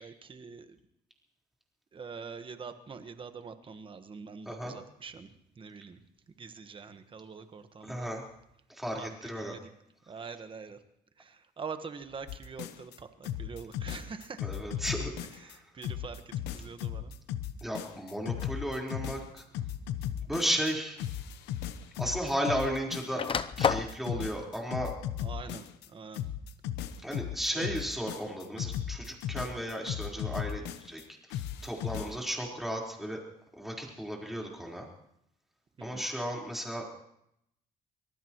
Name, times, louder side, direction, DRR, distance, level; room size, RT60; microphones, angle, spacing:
voice 1, 0.0-0.7 1.9-5.3 5.6-6.0 6.4-8.1 9.0-9.1 9.4-9.6 10.1-10.8 11.6-14.4 15.8-16.2 16.5-17.1 25.2-25.6 25.9-26.2 27.5-27.7 35.8-36.0, right 5 dB, 30° right, 9 dB, 1.3 m, -44 dB
voice 2, 7.8-8.2 8.7-9.6 10.2-10.3 14.4-15.6 17.6-19.4 20.3-21.0 22.0-23.2 23.6-24.9 27.0-31.0 31.3-33.2 33.6-34.9 35.8-36.8, equal, ahead, -2 dB, 4.2 m, -34 dB
sound 1, 12.3-13.0 13.2-15.5 15.8-20.7 21.0-23.3 23.6-25.9 26.1-31.0 31.3-32.2, left 10 dB, 90° left, 0.9 m, -36 dB
sound 2, 18.3-18.6 19.7-19.8 21.2-21.3 21.5-22.6 22.9-24.0, left 6 dB, 30° left, 0.7 m, -31 dB
25.0 x 19.0 x 3.1 m, 0.78 s
cardioid pair, 110°, 17 cm